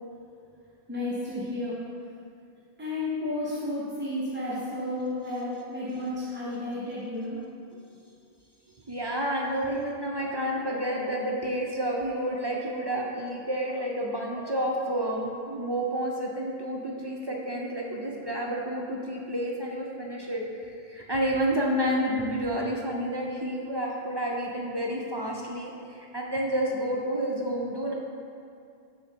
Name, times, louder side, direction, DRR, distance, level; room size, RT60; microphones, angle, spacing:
voice 1, 0.9-1.9 2.8-7.4, left 1 dB, 15° right, -9 dB, 0.7 m, -32 dB
voice 2, 8.9-20.5 20.9-27.9, equal, 45° right, -2 dB, 0.3 m, -30 dB
7.0 x 6.0 x 2.8 m, 2.4 s
omnidirectional pair, 1.0 m